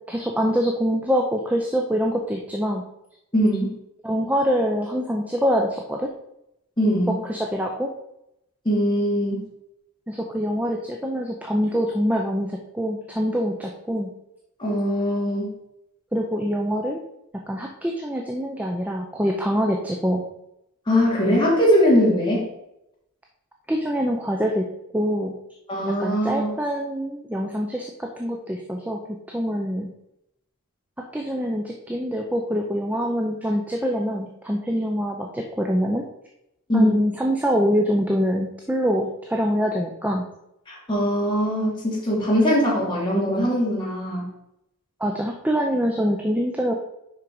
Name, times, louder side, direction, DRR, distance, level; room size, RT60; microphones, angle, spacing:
voice 1, 0.1-2.8 4.0-6.1 7.3-7.9 10.1-14.1 16.1-17.0 17.3-20.2 23.7-24.7 24.9-25.3 25.9-29.0 29.3-29.9 31.1-36.0 36.7-40.3 45.0-46.7, equal, 5° right, 1 dB, 0.5 m, -24 dB
voice 2, 3.3-3.7 6.8-7.1 8.6-9.4 14.6-15.5 20.9-22.5 25.7-26.6 36.7-37.0 40.7-44.2, equal, 20° left, -5 dB, 2.5 m, -21 dB
5.9 x 5.2 x 4.6 m, 0.84 s
head